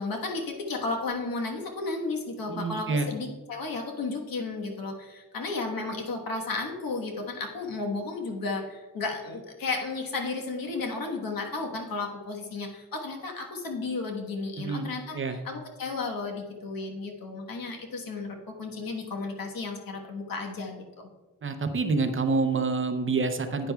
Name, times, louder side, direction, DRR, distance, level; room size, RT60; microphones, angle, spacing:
voice 1, 0.0-15.2 15.4-21.1, left 3 dB, 85° left, 2 dB, 1.3 m, -33 dB
voice 2, 2.5-3.1 14.6-15.4 21.4-23.7, right 4 dB, 40° right, 7 dB, 0.6 m, -27 dB
10.0 x 9.2 x 2.3 m, 1.2 s
wide cardioid pair, 170°, 34 cm